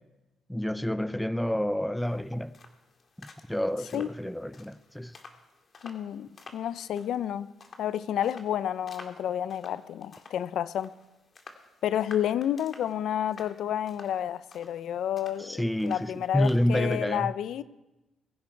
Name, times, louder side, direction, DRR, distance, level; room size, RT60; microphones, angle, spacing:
voice 1, 0.5-2.5 3.2-5.1 15.4-17.3, left 1 dB, 5° left, 0.5 m, -29 dB
sound 1, 2.0-16.9, left 4 dB, 45° left, 2.1 m, -52 dB
voice 2, 5.8-7.5 7.8-10.9 11.8-17.6, left 10 dB, 75° left, 0.5 m, -30 dB
22.0 x 11.0 x 4.6 m
cardioid pair, 90°, 0 cm